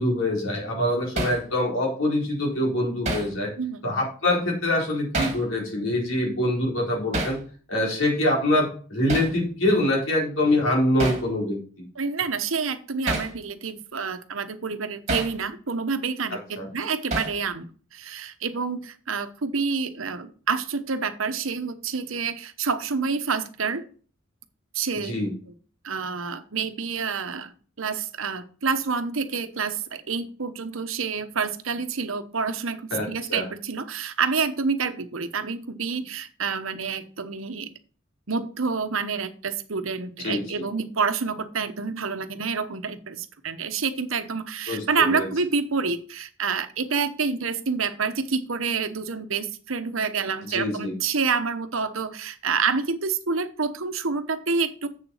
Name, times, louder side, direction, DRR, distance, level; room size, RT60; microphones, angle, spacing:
voice 1, 0.0-3.5 3.8-7.4 7.7-11.8 16.6-16.7 24.9-25.3 32.9-33.4 40.2-40.4 44.7-44.8 45.2-45.3 50.5-50.9, left 1 dB, 80° left, -3 dB, 4.6 m, -24 dB
Hammer, 1.2-1.4 3.0-3.3 5.1-5.4 7.1-7.4 9.1-9.3 11.0-11.3 13.1-13.3 15.1-15.3 17.1-17.4, right 2 dB, 35° right, 2.2 m, -28 dB
voice 2, 11.9-23.9 24.7-25.1 25.8-27.5 27.8-37.7 38.3-54.9, right 5 dB, 85° right, 9 dB, 1.0 m, -28 dB
7.6 x 7.2 x 5.5 m, 0.41 s
head